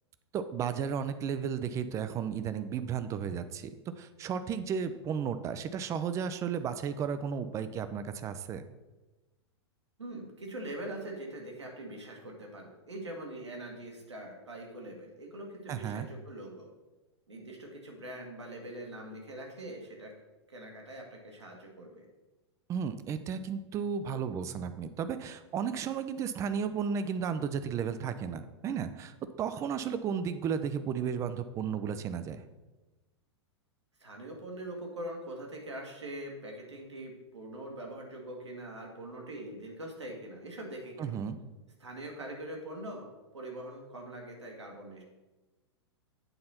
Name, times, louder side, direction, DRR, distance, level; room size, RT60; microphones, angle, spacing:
voice 1, 0.3-3.7 4.0-8.6 15.7-16.1 22.7-32.4 41.0-41.4, right 7 dB, 20° right, 11 dB, 0.4 m, -34 dB
voice 2, 10.0-16.7 17.3-20.1 20.5-22.1 34.0-41.2 41.8-43.1 43.3-45.0, right 1 dB, 75° right, 0 dB, 1.8 m, -43 dB
8.0 x 4.2 x 5.7 m, 1.1 s
figure-of-eight pair, 100°, 15 cm